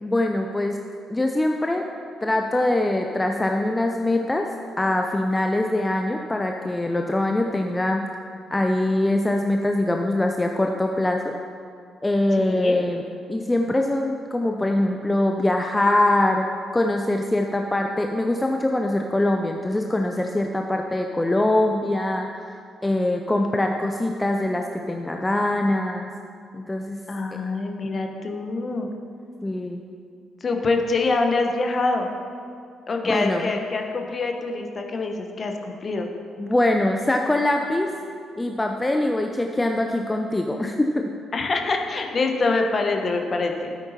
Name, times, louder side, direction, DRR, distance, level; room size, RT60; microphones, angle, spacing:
voice 1, 0.0-0.8 1.1-1.8 2.2-4.5 4.8-8.0 8.5-11.3 12.0-13.0 13.3-16.5 16.7-22.3 22.8-26.1 26.5-27.0 29.4-29.8 33.0-33.5 36.4-37.9 38.4-41.0, left 1 dB, 15° left, 3 dB, 0.6 m, -23 dB
voice 2, 12.3-12.8 27.1-28.9 30.4-32.1 32.9-36.1 41.3-43.7, left 3 dB, 40° left, 3 dB, 1.1 m, -25 dB
13.0 x 8.8 x 2.9 m, 2.3 s
figure-of-eight pair, 40°, 0 cm